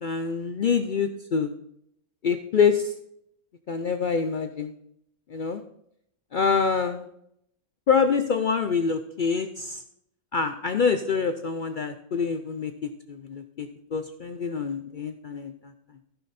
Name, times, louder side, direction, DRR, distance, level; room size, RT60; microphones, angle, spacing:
voice 1, 0.0-1.5 2.2-2.9 3.7-4.7 5.3-5.6 6.3-7.1 7.9-9.8 10.3-15.7, left 5 dB, 75° left, 8 dB, 0.4 m, -26 dB
14.5 x 6.0 x 4.2 m, 0.74 s
omnidirectional pair, 1.5 m